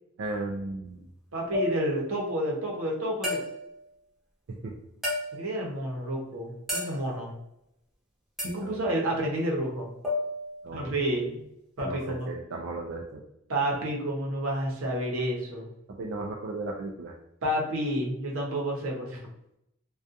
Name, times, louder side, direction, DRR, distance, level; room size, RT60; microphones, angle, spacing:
voice 1, 0.2-1.1 4.5-4.7 8.4-8.8 10.6-11.3 11.8-13.2 15.9-17.1, right 2 dB, 65° right, 0 dB, 0.3 m, -36 dB
voice 2, 1.3-3.4 5.3-7.3 8.4-9.9 10.7-11.3 11.8-12.3 13.5-15.7 17.4-19.2, right 1 dB, 90° right, -1 dB, 0.8 m, -30 dB
sound 1, 1.5-2.1 3.2-3.8 5.0-5.6 6.7-7.2 8.4-8.7 10.0-10.8 11.8-12.2, left 2 dB, ahead, 0.7 m, -33 dB
2.4 x 2.2 x 2.6 m, 0.80 s
head